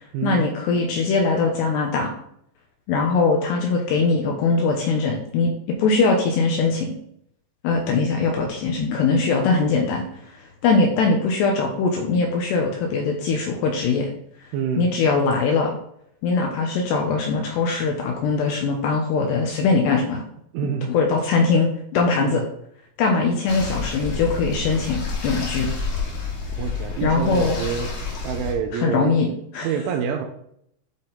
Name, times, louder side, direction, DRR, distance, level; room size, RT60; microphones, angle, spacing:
voice 1, 0.2-2.1 2.9-5.5 5.8-6.9 7.6-10.0 10.6-14.1 14.8-15.7 16.2-20.2 20.9-22.4 23.0-25.7 27.0-27.6 28.7-29.3 29.5-29.7, left 4 dB, 75° left, 1 dB, 2.7 m, -21 dB
voice 2, 14.5-14.9 20.5-20.9 22.2-22.4 26.6-27.9 28.2-29.2 29.6-30.3, right 7 dB, 80° right, 5 dB, 3.2 m, -26 dB
sound 1, 23.5-28.5, left 4 dB, 55° left, 2.6 m, -29 dB
12.0 x 4.0 x 4.0 m, 0.69 s
omnidirectional pair, 5.8 m